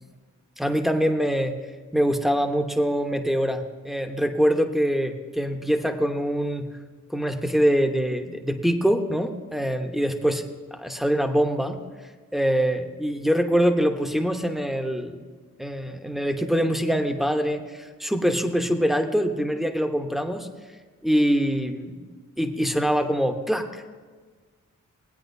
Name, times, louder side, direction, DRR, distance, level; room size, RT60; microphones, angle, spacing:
voice 1, 0.6-1.5 1.9-6.7 7.1-10.4 10.7-11.8 12.3-15.3 15.6-20.5 21.0-22.0 22.4-23.8, equal, ahead, 5 dB, 1.0 m, -24 dB
19.0 x 8.5 x 2.7 m, 1.5 s
cardioid pair, 45°, 31 cm